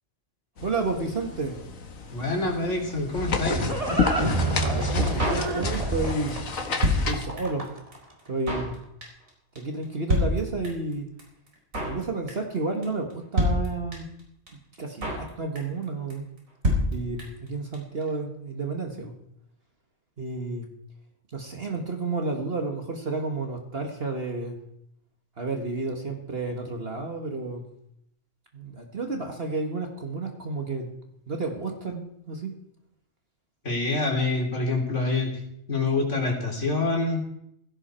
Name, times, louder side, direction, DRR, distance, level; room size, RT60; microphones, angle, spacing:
sound 1, 0.6-7.3, left 4 dB, 80° left, 1.8 m, -31 dB
voice 1, 0.6-1.6 4.7-6.4 7.0-7.7 8.3-8.8 9.6-11.1 11.9-14.1 14.8-16.2 16.9-19.1 20.2-20.7 21.3-24.6 25.4-27.7 28.5-30.9 31.3-32.5, right 3 dB, 45° right, 4 dB, 1.9 m, -31 dB
voice 2, 2.1-3.6 33.6-35.4 35.7-37.2, left 3 dB, 60° left, 1 dB, 3.7 m, -26 dB
Livestock farm animals working animals, 2.9-8.0, right 2 dB, 25° right, 2.3 m, -28 dB
Drum kit, 5.2-6.0 6.3-6.4 6.6-7.7 7.9-8.0 8.2-8.7 9.0-9.3 9.6-9.7 9.8-9.9 10.1-10.9 11.2-11.3 11.5-12.0 12.3-12.6 12.8-12.9 13.1-13.2 13.4-14.2 14.5-14.6 14.7-15.3 15.6-15.8 16.1-16.2 16.4-16.5 16.6-17.5 17.7-17.8 18.0-18.1, left 1 dB, 75° right, 4.9 m, -26 dB
16.5 x 16.0 x 4.4 m, 0.75 s
omnidirectional pair, 1.4 m